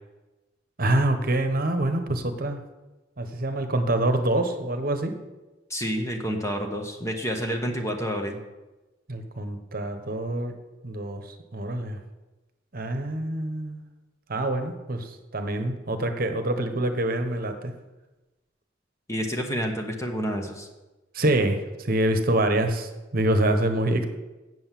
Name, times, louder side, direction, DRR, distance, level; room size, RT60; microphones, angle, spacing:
voice 1, 0.8-2.6 3.2-5.1 9.1-10.5 10.8-11.2 11.5-12.0 12.7-13.8 14.3-17.7 21.1-24.0, right 1 dB, 50° right, 7 dB, 1.1 m, -25 dB
voice 2, 5.7-8.4 19.1-20.7, equal, 15° left, 3 dB, 1.0 m, -29 dB
7.9 x 7.8 x 7.4 m, 1.1 s
head